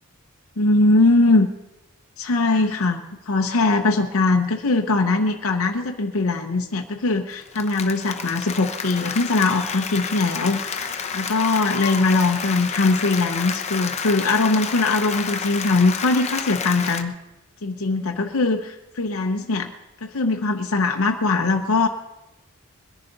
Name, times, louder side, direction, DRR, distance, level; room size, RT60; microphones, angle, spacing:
voice 1, 0.6-1.5 2.2-17.1 17.6-19.7 20.0-21.9, left 3 dB, 65° left, 3 dB, 0.8 m, -21 dB
Applause, 7.3-17.0, left 6 dB, 30° left, 0.8 m, -30 dB
21.5 x 10.5 x 4.0 m, 0.98 s
head